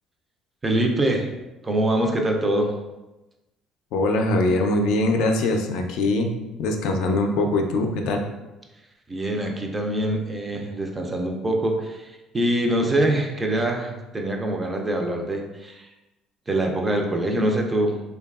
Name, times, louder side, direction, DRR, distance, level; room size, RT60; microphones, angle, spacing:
voice 1, 0.6-1.3 1.6-2.7 9.1-12.1 12.3-15.9 16.5-18.0, right 1 dB, 20° right, 2 dB, 0.4 m, -24 dB
voice 2, 3.9-6.3 6.6-8.2, left 2 dB, 75° left, 3 dB, 0.3 m, -22 dB
2.7 x 2.2 x 2.3 m, 1.0 s
cardioid pair, 105°, 0 cm